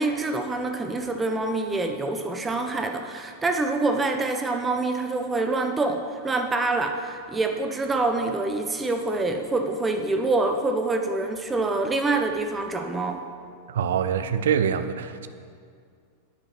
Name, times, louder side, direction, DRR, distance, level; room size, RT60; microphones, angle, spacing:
voice 1, 0.0-13.2, right 2 dB, 15° right, 5 dB, 0.9 m, -26 dB
voice 2, 13.7-15.3, right 8 dB, 60° right, 11 dB, 0.7 m, -25 dB
10.0 x 9.5 x 6.1 m, 2.2 s
figure-of-eight pair, 90°, 0 cm